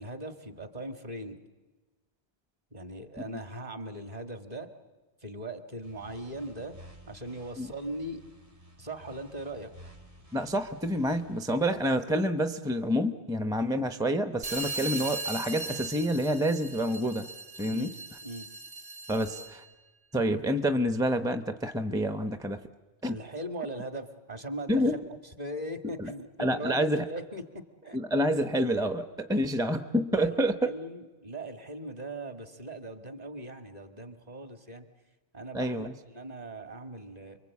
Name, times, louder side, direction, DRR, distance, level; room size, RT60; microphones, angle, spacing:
voice 1, 0.0-1.4 2.7-4.7 5.2-6.8 7.1-8.2 8.8-9.7 11.7-11.8 17.7-17.9 18.2-18.5 19.1-19.3 23.0-25.0 25.4-28.0 30.2-30.3 30.7-34.9 35.3-35.9 36.1-37.4, right 1 dB, 40° right, 7 dB, 2.0 m, -39 dB
sound 1, 5.8-11.9, equal, 70° right, 3.4 m, -53 dB
voice 2, 10.3-17.3 17.6-17.9 19.1-19.6 20.1-22.6 23.0-23.2 24.7-25.0 25.8-26.1 26.4-27.1 27.9-30.7 35.5-35.9, equal, 5° right, 9 dB, 0.8 m, -28 dB
sound 2, 14.4-19.6, right 3 dB, 55° right, 3.0 m, -39 dB
29.5 x 23.0 x 8.4 m, 1.2 s
omnidirectional pair, 1.1 m